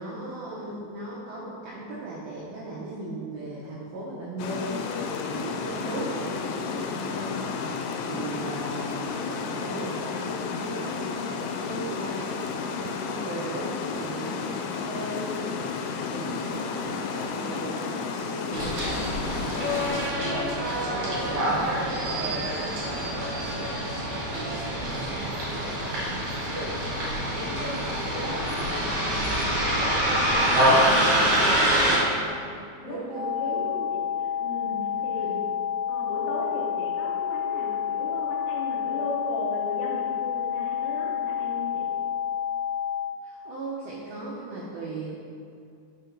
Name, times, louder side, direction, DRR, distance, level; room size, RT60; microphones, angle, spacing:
voice 1, 0.0-7.8 8.0-20.0 20.6-23.9 24.3-25.7 32.8-33.7 34.6-35.4 43.2-45.1, right 2 dB, 85° right, -6 dB, 2.1 m, -38 dB
Water, 4.4-20.1, left 5 dB, 90° left, 3.0 m, -32 dB
voice 2, 8.0-8.5 16.2-16.7 26.1-26.9 27.3-33.0 33.4-35.4 35.9-41.9, left 2 dB, 75° left, -4 dB, 2.6 m, -37 dB
Bus, 18.5-32.0, equal, 55° right, 2.4 m, -25 dB
sound 1, 33.1-43.1, left 8 dB, 70° right, 2.3 m, -29 dB
6.0 x 5.1 x 4.4 m, 2.5 s
omnidirectional pair, 5.4 m